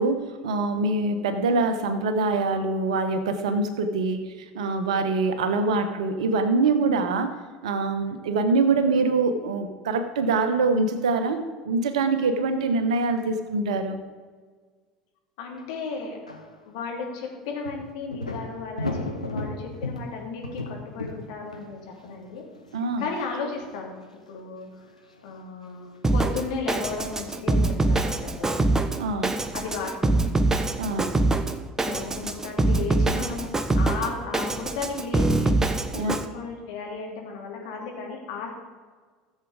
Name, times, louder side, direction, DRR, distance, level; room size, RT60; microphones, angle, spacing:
voice 1, 0.0-7.4 7.6-14.0 22.7-23.1 29.0-29.3 30.8-31.2 35.9-36.2, right 3 dB, 70° right, 9 dB, 1.1 m, -24 dB
voice 2, 15.4-16.2 16.7-22.4 23.0-23.9 24.3-24.7 25.2-28.7 29.5-30.2 31.8-35.5 35.9-38.5, left 4 dB, 60° left, 0 dB, 2.8 m, -34 dB
sound 1, 15.6-15.7 16.3-16.6 17.6-23.8 24.1-24.2 24.7-24.9 25.2-25.4 25.7-26.0 26.8-29.4 29.7-30.4, left 2 dB, 85° left, 0.9 m, -37 dB
Drum kit, 26.0-36.3, right 2 dB, 15° right, 0.9 m, -24 dB
14.5 x 7.6 x 5.0 m, 1.5 s
figure-of-eight pair, 70°, 4 cm